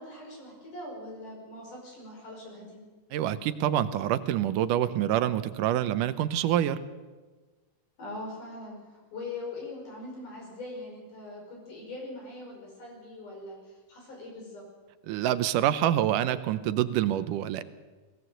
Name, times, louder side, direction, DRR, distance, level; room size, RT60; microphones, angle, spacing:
voice 1, 0.0-2.8 8.0-14.6, left 2 dB, 75° left, 0 dB, 7.2 m, -42 dB
voice 2, 3.1-6.8 15.1-17.6, right 11 dB, 80° right, 12 dB, 2.4 m, -26 dB
20.0 x 16.5 x 7.9 m, 1.3 s
omnidirectional pair, 3.7 m